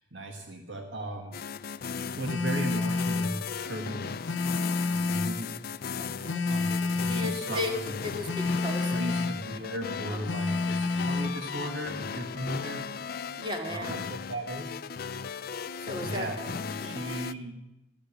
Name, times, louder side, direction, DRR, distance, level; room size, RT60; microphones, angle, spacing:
voice 1, 0.0-1.4 2.2-4.2 4.9-5.5 6.5-7.9 8.8-12.8 13.7-14.7 15.7-17.5, right 1 dB, 75° right, 3 dB, 1.7 m, -37 dB
sound 1, 1.3-17.3, left 6 dB, 55° left, 0.5 m, -37 dB
Telephone, 2.2-3.4 4.2-5.4 6.2-7.4 8.2-9.4 10.3-11.4, left 3 dB, 85° left, 0.8 m, -29 dB
voice 2, 6.0-6.6 7.1-7.7 8.0-9.0 10.1-10.5 13.4-14.1 15.8-16.3 16.8-17.1, left 1 dB, 25° right, 3 dB, 2.2 m, -36 dB
13.0 x 12.0 x 7.2 m, 0.95 s
head